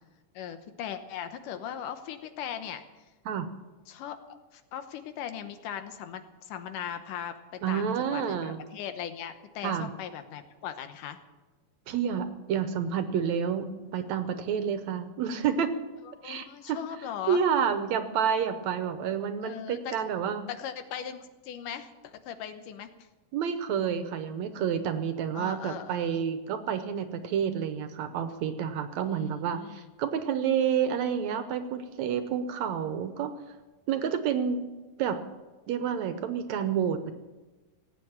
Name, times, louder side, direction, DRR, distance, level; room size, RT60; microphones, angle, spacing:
voice 1, 0.3-2.8 3.9-11.2 16.2-17.4 19.4-20.0 20.5-23.1 25.3-26.3 29.1-29.9, left 9 dB, 90° left, 9 dB, 2.6 m, -39 dB
voice 2, 7.6-8.6 9.6-9.9 11.9-15.8 16.2-16.8 17.3-20.4 23.3-33.3 33.9-34.6 35.0-35.2 35.7-37.1, right 7 dB, 70° right, 9 dB, 2.0 m, -29 dB
18.0 x 8.4 x 8.8 m, 1.2 s
omnidirectional pair, 3.7 m